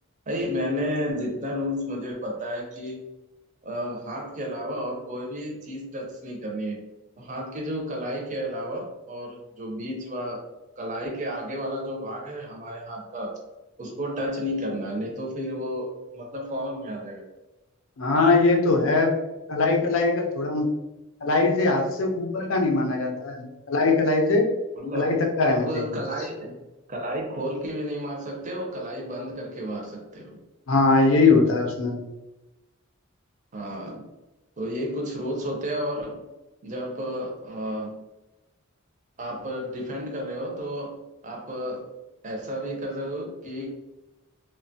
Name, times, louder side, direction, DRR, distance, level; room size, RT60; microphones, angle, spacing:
voice 1, 0.3-3.0 3.6-6.8 7.2-10.4 10.8-13.3 13.8-15.9 16.1-17.2 24.8-25.1 25.4-26.6 26.9-30.4 33.5-34.1 34.6-36.2 36.6-38.0 39.2-41.0 41.2-41.9 42.2-43.7, equal, 35° right, 0 dB, 0.6 m, -32 dB
voice 2, 18.0-19.1 19.5-20.8 21.2-24.5 24.9-26.0 30.7-32.0, left 3 dB, 65° left, 3 dB, 0.5 m, -21 dB
3.1 x 2.2 x 2.6 m, 1.0 s
head